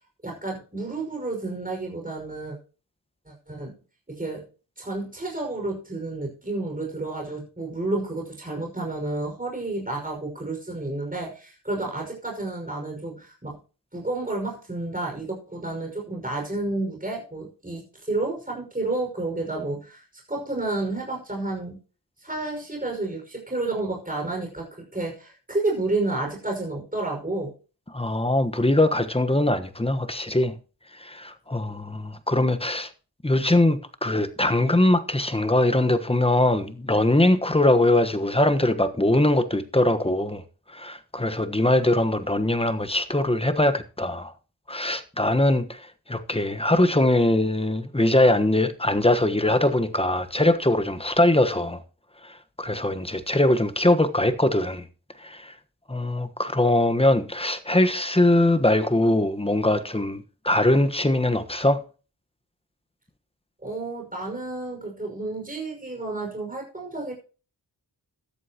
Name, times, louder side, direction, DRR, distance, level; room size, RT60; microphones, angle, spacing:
voice 1, 0.2-2.6 3.3-3.7 4.1-4.5 4.8-13.6 13.9-20.0 20.3-21.8 22.2-27.5 63.6-67.1, right 2 dB, 20° right, 5.7 m, -30 dB
voice 2, 27.9-30.5 31.0-32.9 33.2-40.4 40.7-44.3 44.7-45.8 46.1-51.8 52.6-54.8 55.2-55.5 55.9-61.8, left 1 dB, 15° left, 1.3 m, -22 dB
13.5 x 11.5 x 3.0 m
cardioid pair, 55°, 42 cm